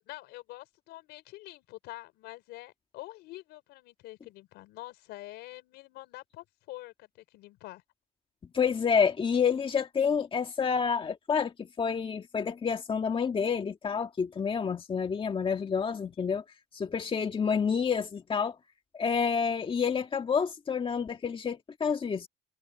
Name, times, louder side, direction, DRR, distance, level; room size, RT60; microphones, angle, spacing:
voice 1, 0.0-7.8, left 18 dB, 90° left, 5.2 m, -46 dB
voice 2, 8.5-16.4 16.7-18.6 18.9-22.3, left 6 dB, 30° left, 1.9 m, -28 dB
cardioid pair, 110°, 17 cm